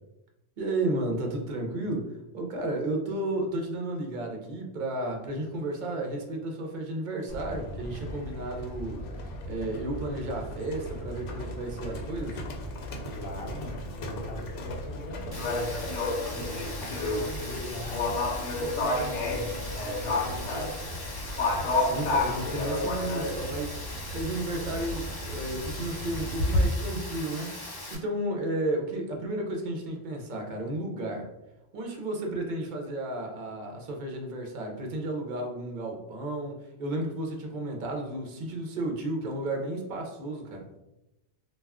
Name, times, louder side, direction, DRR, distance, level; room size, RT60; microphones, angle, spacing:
voice 1, 0.6-9.0 9.5-12.4 21.8-23.8 24.1-31.3 31.7-40.7, right 1 dB, 55° right, 1 dB, 0.6 m, -33 dB
Livestock farm animals working animals, 7.3-26.6, left 2 dB, 85° left, 0.9 m, -32 dB
voice 2, 13.2-15.8 16.3-18.1 18.5-20.9, left 1 dB, 60° left, 0 dB, 0.8 m, -41 dB
Rain, 15.3-27.9, left 1 dB, 30° left, 0.4 m, -40 dB
2.3 x 2.2 x 3.4 m, 0.92 s
omnidirectional pair, 1.2 m